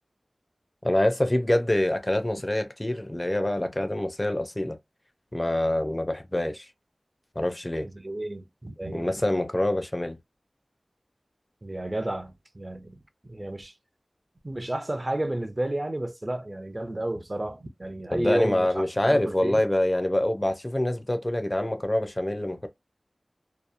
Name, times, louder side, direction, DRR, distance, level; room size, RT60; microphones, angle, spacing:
voice 1, 0.8-4.8 5.3-6.7 7.4-7.9 8.9-10.2 18.1-22.7, left 1 dB, 25° left, 0.5 m, -25 dB
voice 2, 7.8-9.1 11.6-13.7 14.4-19.6, right 1 dB, 35° right, 0.5 m, -32 dB
2.8 x 2.0 x 2.4 m
wide cardioid pair, 50°, 0 cm